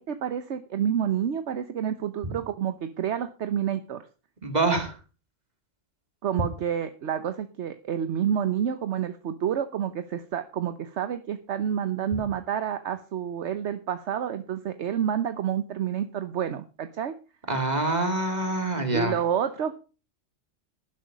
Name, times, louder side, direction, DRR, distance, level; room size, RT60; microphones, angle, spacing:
voice 1, 0.0-4.0 6.2-17.1 18.9-19.7, right 9 dB, 65° right, 10 dB, 1.1 m, -29 dB
voice 2, 4.4-5.0 17.5-19.2, right 2 dB, 35° right, 6 dB, 2.7 m, -26 dB
12.0 x 11.0 x 5.0 m, 0.34 s
omnidirectional pair, 1.3 m